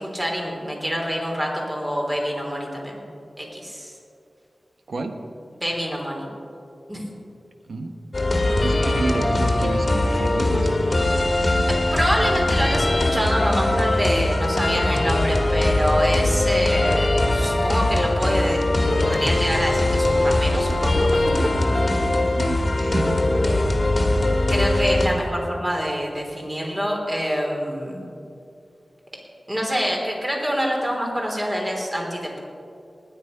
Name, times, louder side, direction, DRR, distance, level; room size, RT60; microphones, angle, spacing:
voice 1, 0.0-3.0 3.4-3.9 5.6-6.3 6.9-7.0 11.9-18.6 19.0-21.3 21.7-22.0 24.5-28.1 29.5-32.4, equal, 20° right, -1 dB, 3.3 m, -26 dB
voice 2, 4.9-5.2 7.7-8.0 8.6-11.0 22.3-23.3, right 3 dB, 75° right, 6 dB, 1.2 m, -30 dB
sound 1, 8.1-25.1, left 1 dB, 45° left, 1.7 m, -21 dB
19.5 x 9.0 x 5.3 m, 2.5 s
wide cardioid pair, 85°, 0 cm